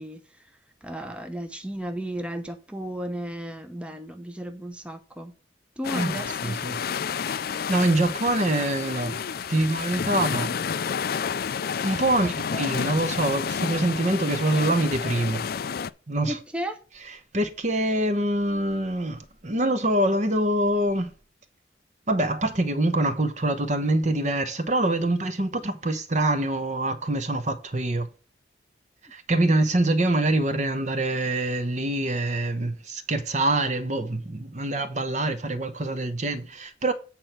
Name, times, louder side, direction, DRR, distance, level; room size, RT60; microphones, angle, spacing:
voice 1, 0.0-5.3 5.8-6.6 12.2-12.6 16.3-16.8, right 1 dB, 5° right, 0.8 m, -35 dB
sound 1, 5.8-15.9, left 7 dB, 55° left, 0.4 m, -30 dB
voice 2, 5.9-6.8 7.3-7.4 7.7-10.6 11.8-15.5 16.1-16.4 17.3-21.1 22.1-28.1 29.1-36.9, right 1 dB, 40° right, 1.1 m, -25 dB
8.7 x 4.4 x 5.7 m
head